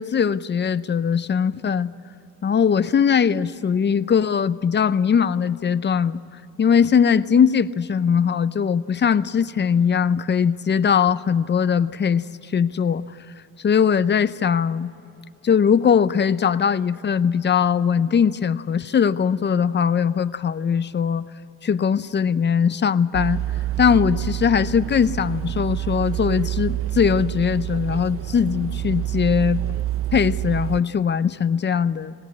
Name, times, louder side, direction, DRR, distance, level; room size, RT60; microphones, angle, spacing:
voice 1, 0.0-1.9 2.4-6.2 6.6-12.2 12.5-13.0 13.6-14.9 15.4-21.3 21.6-23.4 23.8-29.6 30.1-32.1, left 7 dB, 35° left, 15 dB, 0.7 m, -20 dB
sound 1, 23.1-30.8, right 13 dB, 50° right, 0.5 m, -27 dB
20.5 x 18.5 x 8.6 m, 2.6 s
cardioid pair, 90°, 30 cm